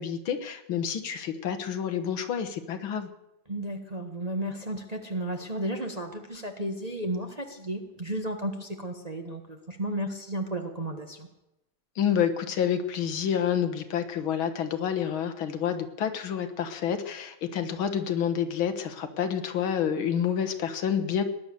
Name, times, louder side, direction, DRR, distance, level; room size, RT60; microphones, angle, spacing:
voice 1, 0.0-3.1 12.0-21.2, left 8 dB, 80° left, 9 dB, 2.1 m, -28 dB
voice 2, 3.5-11.3, right 1 dB, 25° right, 4 dB, 1.1 m, -33 dB
19.5 x 10.5 x 6.9 m, 0.88 s
omnidirectional pair, 2.2 m